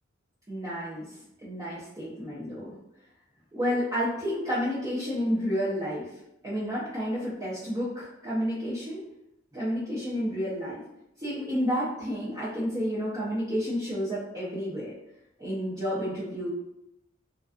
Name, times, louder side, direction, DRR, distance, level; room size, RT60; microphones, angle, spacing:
voice 1, 0.5-2.7 3.5-6.1 6.4-9.0 9.5-10.8 11.2-14.9 15.4-16.5, equal, 20° right, -10 dB, 0.6 m, -30 dB
2.4 x 2.2 x 2.4 m, 0.83 s
head